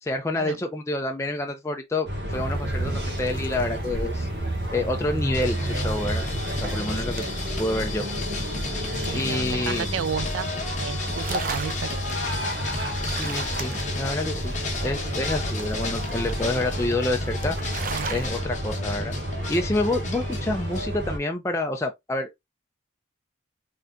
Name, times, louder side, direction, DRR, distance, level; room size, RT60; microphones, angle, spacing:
voice 1, 0.0-4.3 4.7-6.2 6.6-7.2 7.6-8.1 9.1-9.9 13.0-14.5 14.8-17.6 18.1-19.1 19.5-22.4, left 2 dB, 15° left, 0.4 m, -28 dB
sound 1, 2.1-21.2, equal, 60° right, 1.5 m, -30 dB
sound 2, 2.3-18.3, right 3 dB, 45° right, 0.6 m, -40 dB
sound 3, 5.3-20.8, left 4 dB, 40° left, 1.1 m, -35 dB
voice 2, 7.1-7.5 8.9-10.5 10.8-12.0 17.9-18.3, right 7 dB, 85° right, 0.4 m, -33 dB
4.0 x 3.4 x 2.4 m
head